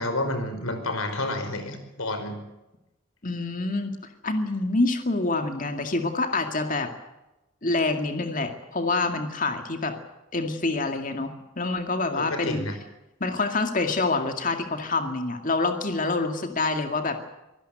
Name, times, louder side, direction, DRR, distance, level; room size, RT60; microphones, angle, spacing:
voice 1, 0.0-2.4 12.1-12.8, left 2 dB, 80° left, 8 dB, 5.3 m, -30 dB
voice 2, 3.2-4.0 4.2-6.9 7.6-9.9 10.3-12.7 13.2-17.2, left 3 dB, 40° left, 6 dB, 2.2 m, -26 dB
24.5 x 18.0 x 7.9 m, 0.95 s
head